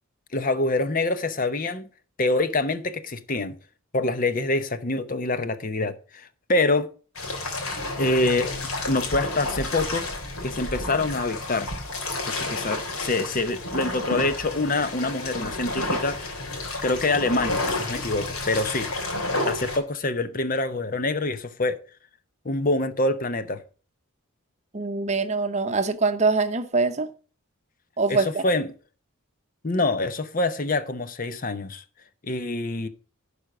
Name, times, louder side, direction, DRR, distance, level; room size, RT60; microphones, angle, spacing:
voice 1, 0.3-1.9 2.2-3.5 3.9-6.9 8.0-8.5 8.9-10.1 10.4-11.7 12.3-16.3 16.8-18.9 19.5-21.8 22.4-23.6 28.1-28.7 29.6-31.8 32.2-32.9, left 2 dB, 40° left, 0.8 m, -25 dB
sound 1, 7.2-19.8, left 2 dB, 80° left, 3.1 m, -30 dB
voice 2, 24.7-27.1 28.0-28.4, right 3 dB, 30° right, 0.8 m, -24 dB
11.5 x 5.1 x 6.0 m
head